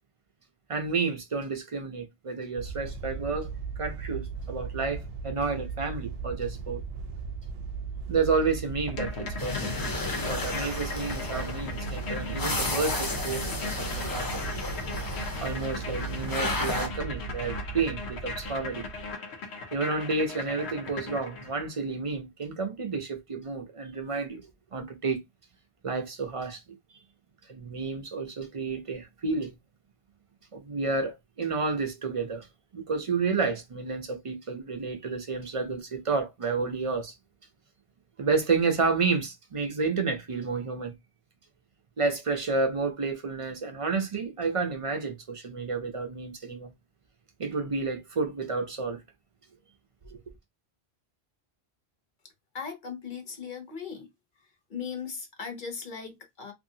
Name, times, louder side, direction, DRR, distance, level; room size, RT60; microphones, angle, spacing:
voice 1, 0.7-6.8 8.1-9.9 10.2-14.5 15.4-18.8 19.7-24.4 24.7-25.2 25.8-26.6 27.5-29.5 30.5-32.5 32.7-37.1 38.2-40.9 42.0-46.7 47.4-49.0 50.1-50.2, right 4 dB, 45° right, 0.5 m, -30 dB
sound 1, 2.6-19.1, right 5 dB, 75° right, 0.8 m, -37 dB
sound 2, 8.9-21.7, left 4 dB, 85° left, 1.0 m, -39 dB
sound 3, 9.4-16.9, left 3 dB, 25° left, 0.5 m, -33 dB
voice 2, 52.5-54.1 54.7-56.5, left 6 dB, 55° left, 0.8 m, -38 dB
2.7 x 2.7 x 2.6 m
omnidirectional pair, 1.1 m